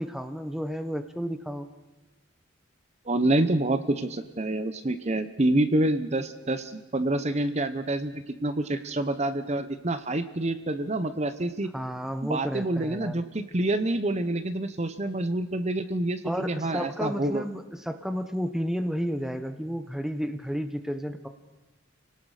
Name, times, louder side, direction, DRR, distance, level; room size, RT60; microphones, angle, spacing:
voice 1, 0.0-1.7 11.7-13.2 16.2-21.3, equal, ahead, 8 dB, 0.9 m, -32 dB
voice 2, 3.1-11.7 12.2-17.4, right 1 dB, 30° right, 11 dB, 0.8 m, -27 dB
29.5 x 18.5 x 5.0 m, 1.1 s
head